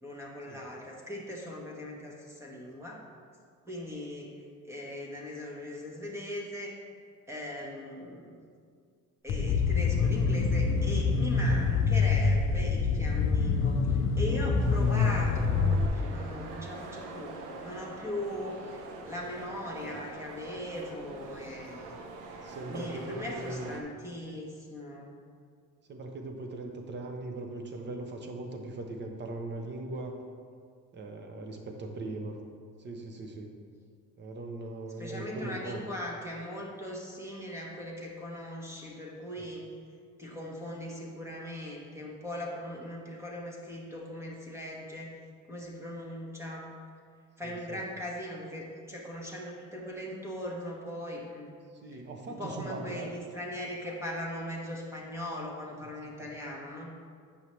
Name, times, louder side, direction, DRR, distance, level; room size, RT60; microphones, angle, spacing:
voice 1, 0.0-3.0 3.6-6.8 7.3-8.4 9.2-25.1 35.0-39.7 40.2-45.1 45.5-46.7 47.4-51.5 52.3-56.9, left 1 dB, 10° right, -2 dB, 1.0 m, -39 dB
sound 1, 9.3-15.9, left 4 dB, 45° left, 0.4 m, -26 dB
sound 2, 14.6-23.8, right 3 dB, 85° right, 0.8 m, -44 dB
voice 2, 22.4-23.8 25.9-30.2 30.9-32.4 32.8-33.6 34.2-35.8 47.4-47.8 51.7-53.1 56.2-56.3, right 2 dB, 35° right, 3 dB, 0.8 m, -39 dB
8.4 x 5.6 x 3.1 m, 2.1 s
cardioid pair, 140°, 30 cm